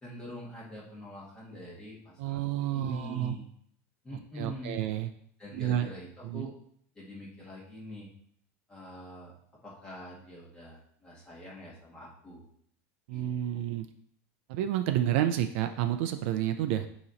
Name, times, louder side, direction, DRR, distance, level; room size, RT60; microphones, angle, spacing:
voice 1, 0.0-2.5 2.7-3.4 4.0-4.8 5.4-6.5 7.0-8.1 8.7-9.3 9.6-12.4 13.1-13.7, equal, 10° left, -5 dB, 1.7 m, -44 dB
voice 2, 2.2-3.3 4.4-5.1 5.5-5.9 6.2-6.5 13.1-13.9 14.5-16.9, right 12 dB, 60° right, 8 dB, 0.5 m, -30 dB
8.6 x 3.0 x 4.0 m, 0.65 s
supercardioid pair, 160°, 8 cm